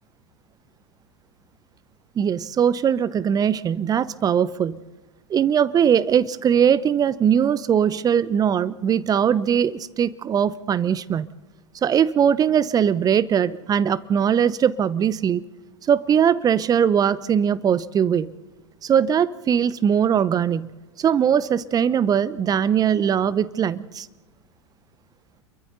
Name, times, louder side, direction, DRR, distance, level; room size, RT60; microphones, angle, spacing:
voice 1, 2.2-4.8 5.3-11.3 11.8-15.4 15.9-18.3 18.8-20.7 21.0-24.1, right 8 dB, 25° right, 17 dB, 0.8 m, -20 dB
28.5 x 23.0 x 4.0 m, 1.2 s
figure-of-eight pair, 90°, 15 cm